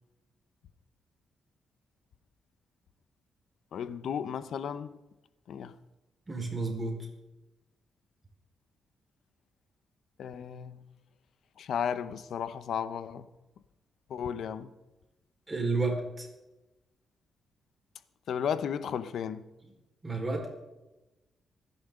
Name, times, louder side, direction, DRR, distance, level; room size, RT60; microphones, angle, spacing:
voice 1, 3.7-4.9 5.5-5.7 10.2-10.8 11.6-13.3 14.1-14.7 18.3-19.4, left 8 dB, 75° left, 0.9 m, -34 dB
voice 2, 6.3-7.1 15.5-16.3 20.0-20.5, right 3 dB, 25° right, 4.8 m, -31 dB
26.0 x 10.5 x 3.9 m
cardioid pair, 75°, 0 cm